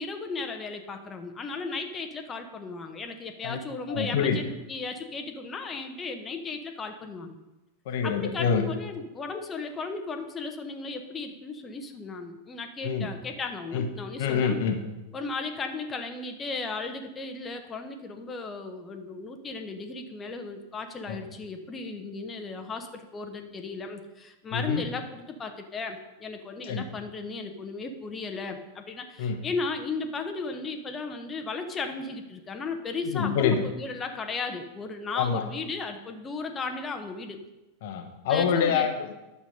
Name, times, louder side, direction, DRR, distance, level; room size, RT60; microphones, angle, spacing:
voice 1, 0.0-7.4 8.0-14.6 15.1-37.4 38.3-38.9, left 4 dB, 20° left, 5 dB, 1.0 m, -35 dB
voice 2, 3.9-4.4 7.9-8.7 12.8-13.1 13.7-13.9 14.2-14.8 21.1-21.2 24.5-24.8 26.7-26.8 29.2-29.4 33.0-33.7 35.1-35.4 37.8-39.1, left 6 dB, 50° left, 6 dB, 1.1 m, -26 dB
10.5 x 6.8 x 5.3 m, 1.0 s
figure-of-eight pair, 90°, 0 cm